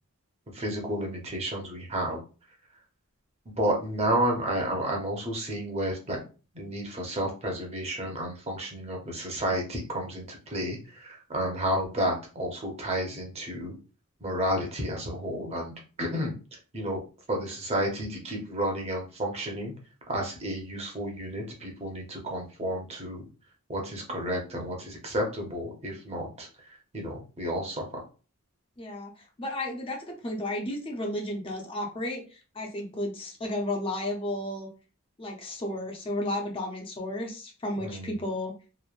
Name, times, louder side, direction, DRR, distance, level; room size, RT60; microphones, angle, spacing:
voice 1, 0.5-2.2 3.5-6.2 6.5-13.8 14.2-17.0 17.3-19.7 20.1-23.2 23.7-26.5 26.9-28.0 37.8-38.2, right 1 dB, 30° right, 1 dB, 0.7 m, -31 dB
voice 2, 28.8-34.7 35.2-38.5, left 1 dB, 25° left, 1 dB, 0.5 m, -33 dB
3.0 x 2.0 x 2.4 m, 0.35 s
head